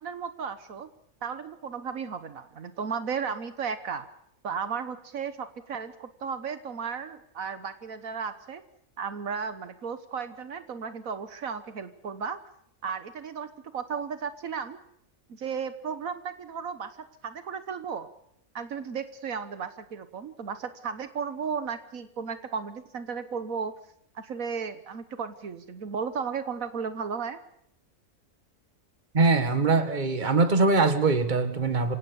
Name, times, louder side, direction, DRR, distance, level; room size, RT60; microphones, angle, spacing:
voice 1, 0.0-0.9 1.2-4.1 4.4-8.6 9.0-12.4 12.8-14.8 15.3-17.0 17.2-18.1 18.5-23.7 24.1-27.4, right 6 dB, 75° right, 11 dB, 1.6 m, -34 dB
voice 2, 29.1-32.0, right 3 dB, 35° right, 10 dB, 1.8 m, -22 dB
26.0 x 17.5 x 7.0 m, 0.70 s
omnidirectional pair, 1.4 m